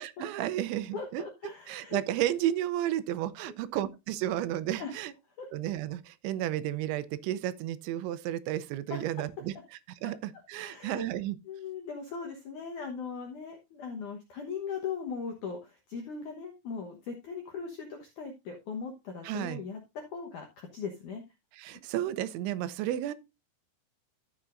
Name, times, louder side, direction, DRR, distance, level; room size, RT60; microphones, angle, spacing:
voice 1, 0.0-1.2 1.7-5.1 5.5-9.5 10.0-11.4 19.2-19.6 21.6-23.1, right 13 dB, 85° right, 3.0 m, -32 dB
voice 2, 0.9-2.0 4.8-5.0 5.3-5.5 8.9-9.2 10.6-11.1 11.5-21.2, left 5 dB, 75° left, 1.8 m, -39 dB
13.5 x 7.2 x 2.5 m
omnidirectional pair, 5.4 m